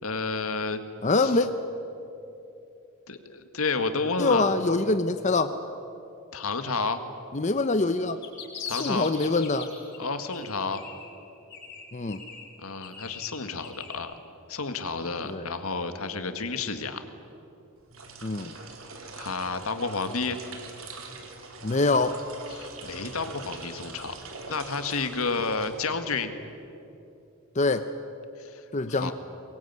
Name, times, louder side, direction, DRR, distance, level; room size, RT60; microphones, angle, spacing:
voice 1, 0.0-0.8 1.2-1.4 3.1-4.5 6.3-7.0 8.7-9.1 10.0-10.8 12.6-14.2 14.5-17.0 19.2-20.4 22.5-24.2 24.5-26.3 28.4-29.1, left 4 dB, 80° left, 9 dB, 1.8 m, -31 dB
voice 2, 1.0-1.5 4.2-5.5 7.3-8.2 8.8-9.7 11.9-12.2 15.2-15.4 18.2-18.5 21.6-22.2 27.6-27.9 28.7-29.1, left 3 dB, 35° left, 9 dB, 0.7 m, -24 dB
sound 1, 8.0-10.0 10.3-11.2 11.5-14.0, left 6 dB, 50° left, 5.8 m, -41 dB
sound 2, 17.8-26.2, right 3 dB, 70° right, 2.9 m, -43 dB
23.5 x 21.5 x 9.6 m, 2.8 s
head